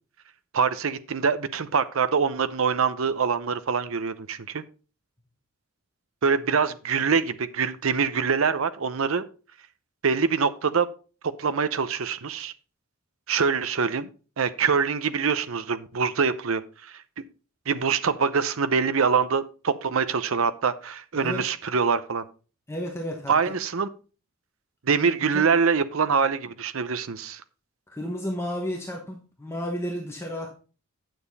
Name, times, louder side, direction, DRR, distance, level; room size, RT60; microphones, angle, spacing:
voice 1, 0.5-4.6 6.2-9.2 10.0-10.9 11.4-12.5 13.3-14.1 14.4-17.0 17.7-22.2 23.3-23.9 24.8-27.4, right 5 dB, 70° right, 13 dB, 0.7 m, -24 dB
voice 2, 22.7-23.5 25.2-25.4 27.9-30.6, equal, 10° left, 1 dB, 1.1 m, -32 dB
9.2 x 7.1 x 4.0 m, 0.36 s
head